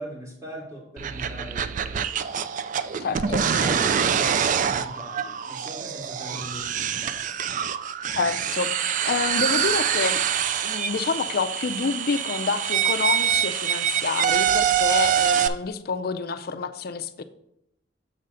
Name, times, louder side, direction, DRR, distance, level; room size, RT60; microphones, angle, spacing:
voice 1, 0.0-2.4 3.2-7.2, right 1 dB, 15° right, -3 dB, 2.2 m, -39 dB
sound 1, 1.0-15.5, right 8 dB, 45° right, 0.3 m, -25 dB
voice 2, 3.0-3.4 8.2-10.2 10.6-17.2, left 4 dB, 55° left, 10 dB, 0.5 m, -28 dB
7.2 x 3.8 x 5.5 m, 0.78 s
head